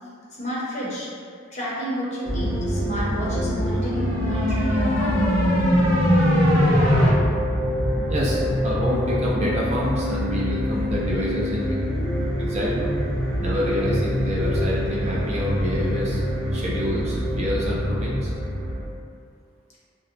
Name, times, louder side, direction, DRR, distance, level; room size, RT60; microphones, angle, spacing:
voice 1, 0.4-1.1 1.5-5.5, equal, 35° left, -7 dB, 0.6 m, -30 dB
sound 1, 2.3-18.8, equal, 75° left, 0.8 m, -25 dB
sound 2, 3.8-7.1, equal, 80° right, 0.8 m, -20 dB
voice 2, 8.1-11.8 12.4-13.0 13.4-16.2 16.5-18.3, equal, 35° right, -5 dB, 0.4 m, -27 dB
2.6 x 2.0 x 2.5 m, 2.1 s
head